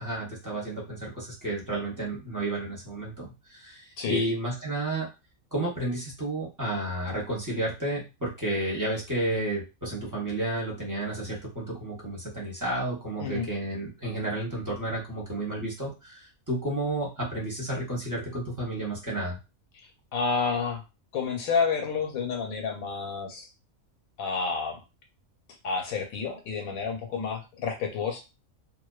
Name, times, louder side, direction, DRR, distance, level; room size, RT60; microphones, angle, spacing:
voice 1, 0.0-5.1 5.5-19.4, right 1 dB, 15° right, -4 dB, 0.7 m, -31 dB
voice 2, 20.1-20.8 21.1-23.5 24.2-24.8 25.6-28.2, left 5 dB, 85° left, 3 dB, 1.1 m, -29 dB
2.5 x 2.1 x 2.3 m, 0.27 s
omnidirectional pair, 1.4 m